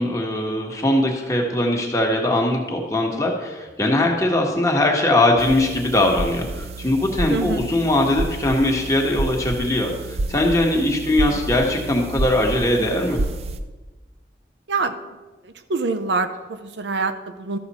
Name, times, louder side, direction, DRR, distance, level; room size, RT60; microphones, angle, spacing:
voice 1, 0.0-13.2, left 1 dB, 20° left, 0 dB, 1.3 m, -21 dB
sound 1, 5.4-13.6, right 2 dB, 35° right, 0.5 m, -30 dB
voice 2, 7.3-7.7 11.3-11.4 14.7-15.0 15.4-17.6, right 3 dB, 80° right, 9 dB, 0.7 m, -25 dB
13.0 x 6.6 x 4.2 m, 1.2 s
head